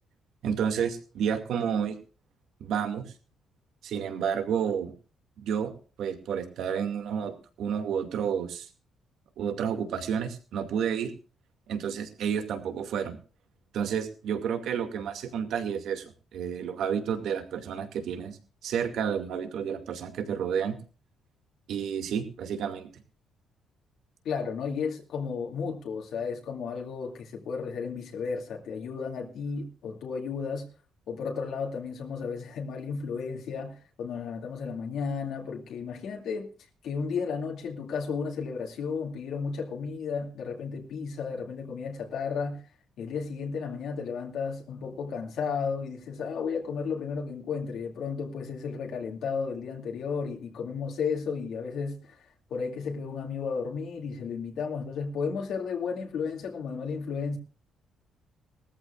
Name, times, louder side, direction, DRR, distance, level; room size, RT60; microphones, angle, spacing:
voice 1, 0.4-2.0 2.6-3.0 3.8-4.9 5.4-5.7 6.0-8.7 9.4-11.1 11.7-13.2 13.7-16.0 16.3-20.8 21.7-22.9, right 7 dB, 70° right, 2.3 m, -30 dB
voice 2, 24.2-30.7 31.1-36.5 36.8-42.6 43.0-57.4, left 5 dB, 65° left, 2.5 m, -33 dB
20.5 x 14.0 x 2.5 m
cardioid pair, 160°, 0 cm